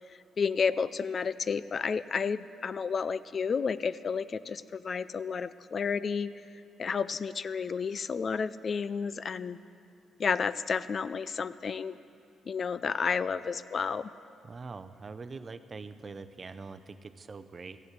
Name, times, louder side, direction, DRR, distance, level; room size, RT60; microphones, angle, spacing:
voice 1, 0.4-6.3 6.8-9.6 10.2-12.0 12.5-14.1, left 5 dB, 45° left, 15 dB, 0.3 m, -31 dB
voice 2, 14.4-17.8, right 4 dB, 35° right, 11 dB, 0.6 m, -43 dB
14.5 x 7.9 x 8.2 m, 2.7 s
cardioid pair, 90°, 0 cm